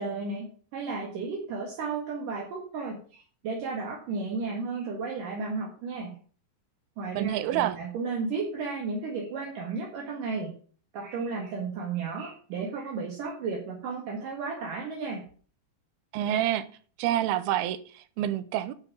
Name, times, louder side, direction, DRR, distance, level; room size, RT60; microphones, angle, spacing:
voice 1, 0.0-6.1 7.0-10.5 10.9-15.2, right 4 dB, 65° right, 3.2 m, -33 dB
voice 2, 7.1-7.8 16.1-16.7 17.0-18.7, right 12 dB, 90° right, 2.7 m, -28 dB
11.0 x 5.9 x 6.0 m
omnidirectional pair, 4.2 m